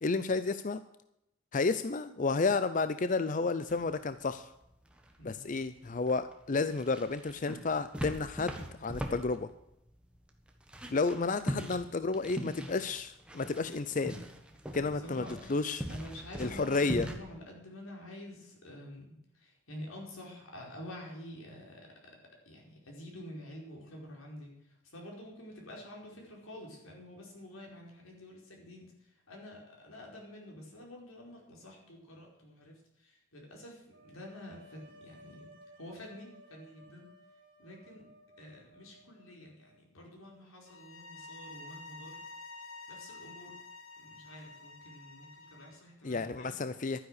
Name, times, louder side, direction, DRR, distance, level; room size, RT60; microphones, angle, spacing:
voice 1, 0.0-0.8 1.5-4.5 5.2-8.5 8.8-9.5 10.9-14.2 14.7-15.8 16.4-17.1 46.0-47.0, left 3 dB, 40° left, 12 dB, 0.5 m, -31 dB
sound 1, 3.7-17.1, equal, 5° right, 1.4 m, -42 dB
voice 2, 5.2-5.5 14.8-15.3 15.9-19.1 19.3-21.9 22.4-35.5 35.8-37.1 37.6-38.1 38.4-42.2 42.9-43.5 44.0-46.6, left 1 dB, 90° left, 0 dB, 4.7 m, -48 dB
sound 2, 33.9-39.8, right 1 dB, 55° right, 2.5 m, -58 dB
sound 3, 40.7-45.8, left 3 dB, 70° left, 2.0 m, -49 dB
12.5 x 9.8 x 6.5 m, 0.83 s
head